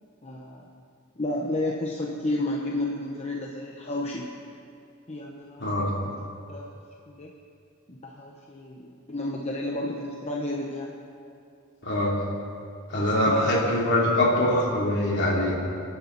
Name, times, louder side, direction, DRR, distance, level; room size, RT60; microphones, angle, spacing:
voice 1, 0.2-0.7 1.2-4.4 5.1-6.1 6.5-6.7 7.1-7.3 7.9-11.0 13.2-13.7, left 1 dB, 30° left, -1 dB, 1.0 m, -32 dB
voice 2, 5.6-5.9 11.8-12.2 12.9-15.5, left 1 dB, 55° left, -3 dB, 3.2 m, -23 dB
26.0 x 11.5 x 4.1 m, 2.5 s
head